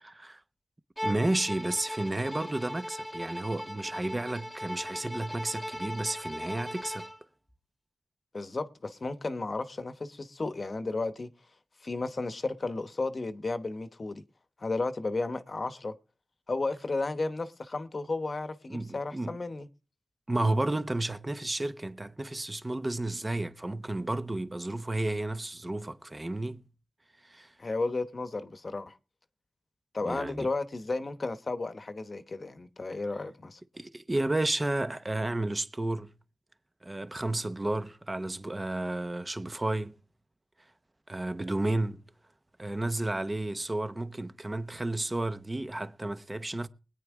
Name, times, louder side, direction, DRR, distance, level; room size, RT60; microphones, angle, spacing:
Bowed string instrument, 1.0-7.2, equal, ahead, 1.6 m, -38 dB
voice 1, 1.0-7.1 18.7-19.4 20.3-26.6 27.2-27.5 30.1-30.5 33.7-36.1 36.8-39.9 41.1-42.0 42.6-46.7, right 2 dB, 25° right, 0.9 m, -32 dB
voice 2, 8.3-11.3 11.8-14.2 14.6-15.9 16.5-19.7 27.6-29.0 29.9-33.6, left 3 dB, 50° left, 1.0 m, -33 dB
20.5 x 9.3 x 3.6 m
cardioid pair, 60°, 0 cm